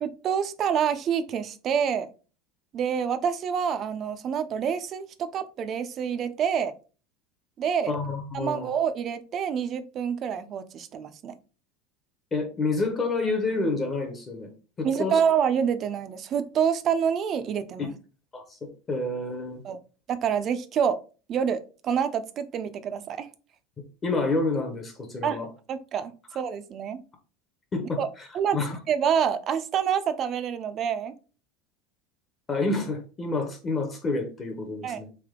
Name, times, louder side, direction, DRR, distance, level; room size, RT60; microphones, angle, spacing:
voice 1, 0.0-2.1 2.7-6.7 7.6-7.9 8.3-11.3 14.8-17.9 19.6-19.8 20.1-21.0 21.3-23.3 25.2-27.0 28.0-28.1 28.3-28.6 28.9-31.1 34.8-35.0, right 7 dB, 25° right, 12 dB, 0.4 m, -27 dB
voice 2, 7.9-8.7 12.3-14.5 14.8-15.2 17.8-17.9 18.3-19.6 24.0-25.5 27.7-28.3 28.5-28.8 32.5-35.1, left 3 dB, 15° left, 4 dB, 0.6 m, -29 dB
3.6 x 3.4 x 3.6 m, 0.35 s
supercardioid pair, 175°, 0 cm